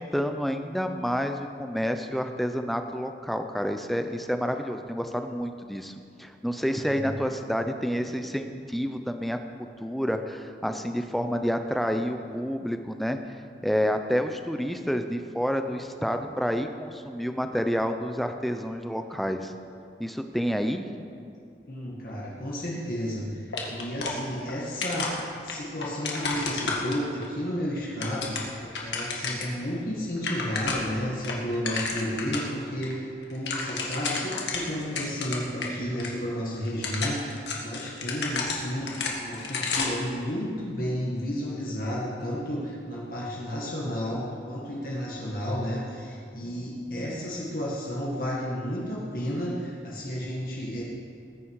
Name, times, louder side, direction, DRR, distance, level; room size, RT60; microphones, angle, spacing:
voice 1, 0.0-9.4 9.8-13.2 13.6-19.5 20.0-20.9, equal, ahead, 6 dB, 0.6 m, -29 dB
voice 2, 21.7-23.4 23.7-25.2 25.4-50.8, equal, 55° left, -5 dB, 1.9 m, -32 dB
sound 1, 23.5-24.6 24.8-27.3 27.8-29.6 29.9-30.0 30.2-31.0 31.2-32.5 32.8-32.9 33.2-35.7 36.0-36.1 36.7-40.1, left 4 dB, 90° left, 2.0 m, -31 dB
20.0 x 9.4 x 4.8 m, 2.4 s
head